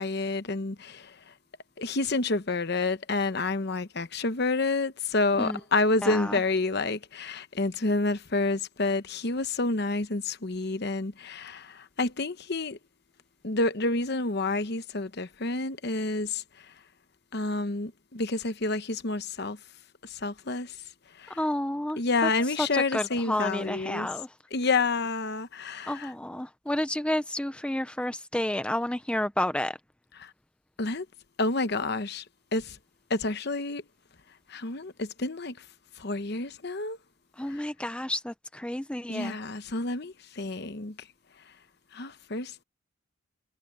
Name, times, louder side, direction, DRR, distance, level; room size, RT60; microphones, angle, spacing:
voice 1, 0.0-1.3 1.8-12.8 13.4-16.7 17.3-19.6 20.0-20.8 21.2-21.4 22.0-24.1 24.5-26.1 30.2-30.3 30.8-31.1 31.4-32.2 32.5-32.8 33.1-33.8 34.5-35.6 36.0-37.0 37.5-37.6 39.1-41.0 41.9-42.6, left 3 dB, 50° left, 1.0 m, -29 dB
voice 2, 6.0-6.4 21.3-22.3 22.6-24.3 25.9-29.8 37.4-39.4, left 1 dB, 5° left, 0.6 m, -30 dB
head